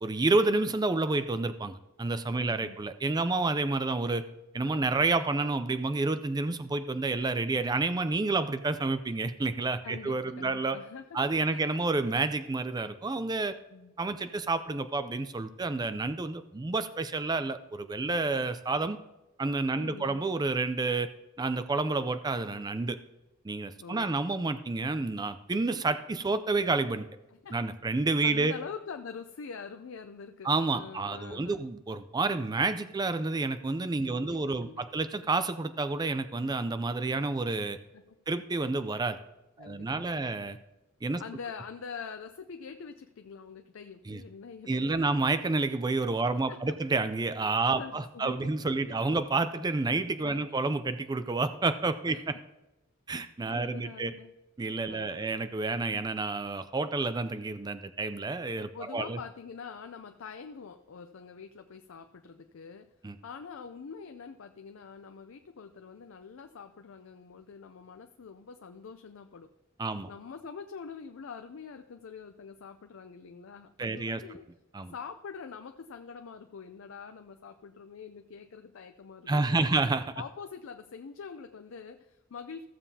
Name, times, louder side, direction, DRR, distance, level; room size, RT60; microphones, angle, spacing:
voice 1, 0.0-4.3 4.5-10.8 11.1-13.6 14.0-19.0 19.4-21.1 21.4-23.0 23.4-27.1 27.5-28.5 30.4-37.8 38.3-39.2 39.6-40.6 41.0-41.2 44.1-44.2 44.7-52.3 53.1-54.1 54.6-59.2 63.0-63.2 69.8-70.1 73.8-74.2 74.7-74.9 79.3-80.1, right 3 dB, 20° right, 11 dB, 0.4 m, -29 dB
voice 2, 2.3-2.8 9.8-11.2 11.5-11.7 13.7-13.9 19.7-20.3 23.8-24.3 27.3-27.6 28.2-31.7 34.0-35.0 37.9-38.2 39.6-40.5 41.2-45.0 46.5-46.7 47.8-48.4 48.7-49.0 50.2-50.5 52.1-52.2 53.5-54.3 54.9-55.3 58.7-62.9 63.2-69.5 70.1-74.4 74.9-79.7 80.2-82.6, left 6 dB, 85° left, 7 dB, 0.5 m, -45 dB
15.0 x 7.2 x 2.8 m, 0.98 s
head